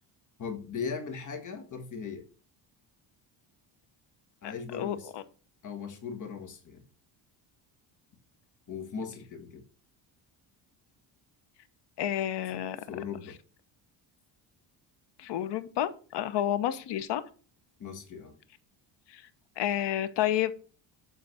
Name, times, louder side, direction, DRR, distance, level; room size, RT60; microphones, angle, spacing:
voice 1, 0.4-2.2 4.4-5.1 5.6-6.8 8.7-9.6 12.5-13.4 17.8-18.4, left 6 dB, 40° left, 6 dB, 1.7 m, -38 dB
voice 2, 4.7-5.2 12.0-12.8 15.2-17.2 19.1-19.2 19.6-20.5, left 11 dB, 65° left, 12 dB, 0.9 m, -30 dB
8.1 x 3.9 x 6.1 m, 0.37 s
cardioid pair, 140°, 45 cm